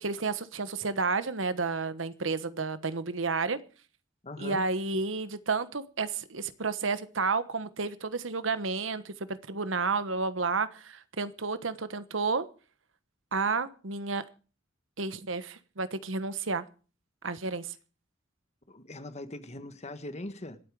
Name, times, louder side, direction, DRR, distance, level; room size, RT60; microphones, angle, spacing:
voice 1, 0.0-3.6 4.4-12.5 13.3-14.2 15.0-16.6 17.2-17.7, right 4 dB, 80° right, 1.2 m, -31 dB
voice 2, 4.2-4.6 18.7-20.6, left 1 dB, 35° left, 1.5 m, -41 dB
26.5 x 8.8 x 4.8 m
head